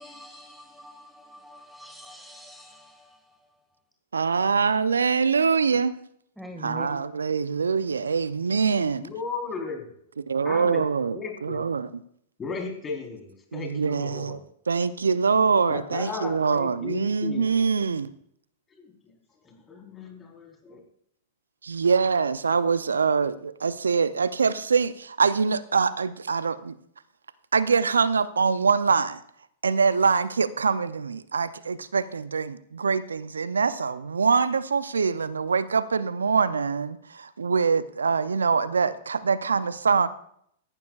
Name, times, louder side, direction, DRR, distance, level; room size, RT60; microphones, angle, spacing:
voice 1, 0.0-3.4 6.4-6.9, equal, ahead, 4 dB, 1.8 m, -44 dB
voice 2, 4.1-5.9 6.6-9.0 10.3-11.9 13.5-14.4 14.7-18.1 21.6-26.8 27.5-29.2 29.6-40.1, right 5 dB, 80° right, 16 dB, 0.5 m, -24 dB
voice 3, 9.0-9.8 10.4-10.8 11.1-11.6 12.4-14.4 15.7-17.6 18.7-18.9 19.4-20.8, left 4 dB, 20° left, 1 dB, 4.0 m, -35 dB
17.5 x 14.5 x 2.4 m, 0.68 s
figure-of-eight pair, 100°, 0 cm